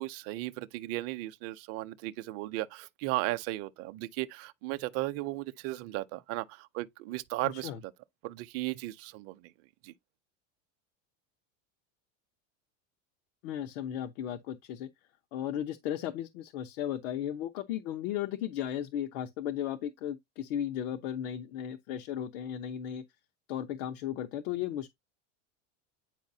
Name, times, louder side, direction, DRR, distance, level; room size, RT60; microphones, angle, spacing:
voice 1, 0.0-7.9 8.2-9.5 9.8-9.9, right 18 dB, 40° right, 0.6 m, -36 dB
voice 2, 13.4-14.9 15.3-23.0 23.5-24.9, left 10 dB, 85° left, 0.9 m, -35 dB
9.0 x 4.7 x 2.7 m
cardioid pair, 165°, 37 cm